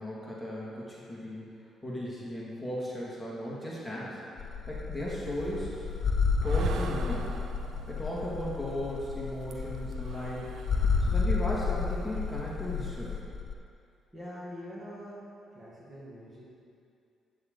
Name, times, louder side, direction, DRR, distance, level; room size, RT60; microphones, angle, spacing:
voice 1, 0.0-1.4 1.8-4.2 4.7-5.8 6.4-7.4 7.9-10.6 11.0-13.2, equal, 5° left, -7 dB, 2.2 m, -36 dB
sound 1, 4.4-13.5, left 5 dB, 50° left, 0.6 m, -31 dB
sound 2, 5.1-13.2, right 6 dB, 70° right, 0.5 m, -44 dB
voice 2, 14.1-15.3 15.5-16.4, equal, 20° right, -7 dB, 2.1 m, -44 dB
8.8 x 7.8 x 3.9 m, 2.5 s
cardioid pair, 90°, 0 cm